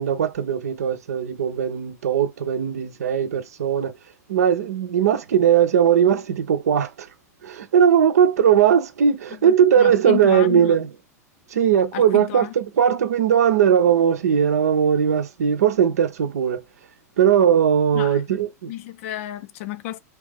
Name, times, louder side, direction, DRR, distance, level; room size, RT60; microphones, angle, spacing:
voice 1, 0.0-3.9 4.3-7.1 7.4-10.9 11.5-16.6 17.2-18.7, right 8 dB, 75° right, 0.6 m, -19 dB
voice 2, 9.4-10.7 11.9-12.5 17.9-18.2 18.7-20.0, left 13 dB, 55° left, 0.5 m, -31 dB
2.8 x 2.4 x 3.4 m
hypercardioid pair, 95°, 9 cm